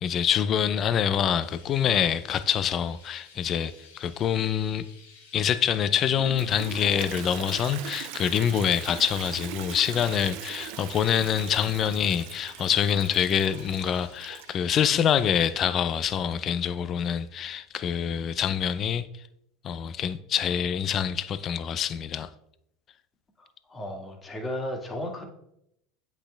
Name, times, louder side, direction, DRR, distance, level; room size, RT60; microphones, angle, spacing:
voice 1, 0.0-4.8 5.3-19.1 19.6-22.3, left 9 dB, 40° left, 0.5 m, -26 dB
Chirp tweet, 1.4-15.5, left 4 dB, 90° left, 2.6 m, -54 dB
Toilet flush, 6.2-14.7, right 12 dB, 65° right, 0.5 m, -40 dB
voice 2, 23.7-25.2, left 1 dB, 25° left, 2.0 m, -34 dB
8.1 x 5.8 x 3.4 m
hypercardioid pair, 90°, 0 cm